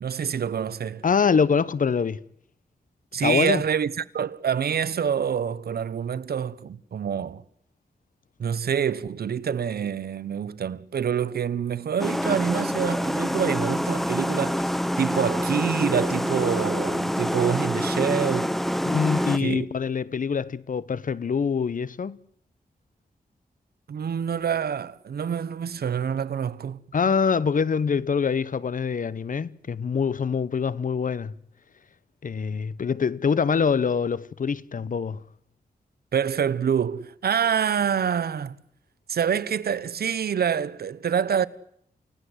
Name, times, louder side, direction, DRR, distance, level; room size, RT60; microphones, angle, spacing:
voice 1, 0.0-1.0 3.1-7.4 8.4-14.7 15.0-18.6 19.4-19.7 23.9-26.8 36.1-38.6 39.1-41.5, right 7 dB, 80° right, 1.0 m, -26 dB
voice 2, 1.0-2.2 3.2-3.6 18.8-22.2 26.9-31.3 32.2-35.2, left 6 dB, 55° left, 1.0 m, -24 dB
sound 1, 12.0-19.4, equal, ahead, 0.9 m, -26 dB
29.0 x 17.0 x 8.0 m
cardioid pair, 75°, 16 cm